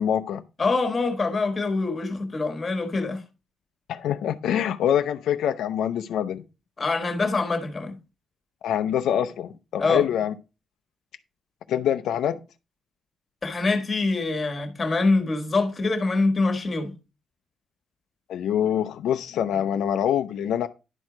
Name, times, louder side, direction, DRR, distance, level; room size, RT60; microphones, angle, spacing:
voice 1, 0.0-0.4 3.9-6.4 8.6-10.3 11.7-12.4 18.3-20.7, left 9 dB, 80° left, 0.5 m, -25 dB
voice 2, 0.6-3.2 6.8-8.0 9.8-10.0 13.4-16.9, left 3 dB, 25° left, 1.4 m, -24 dB
10.5 x 4.5 x 4.9 m
cardioid pair, 165°, 0 cm